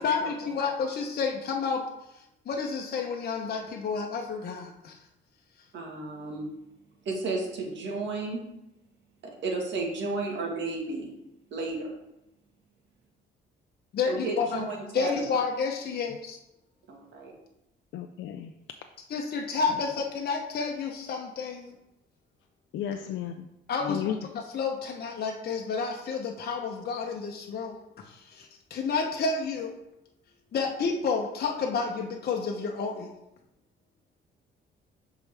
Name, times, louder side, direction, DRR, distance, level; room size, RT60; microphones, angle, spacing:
voice 1, 0.0-1.8 2.5-4.9 13.9-14.6 14.9-16.4 19.1-21.7 23.7-24.0 24.5-27.8 28.1-29.7 30.5-33.1, left 5 dB, 50° left, 1 dB, 0.8 m, -30 dB
voice 2, 5.7-6.5 7.1-8.4 9.2-11.1 11.5-11.9 14.1-15.1 16.9-17.3, right 3 dB, 65° right, 0 dB, 1.6 m, -33 dB
voice 3, 17.9-18.5 19.7-19.8 22.7-23.5 23.8-24.2, left 9 dB, 75° left, 6 dB, 0.4 m, -33 dB
6.9 x 4.6 x 3.4 m, 0.87 s
cardioid pair, 90°, 20 cm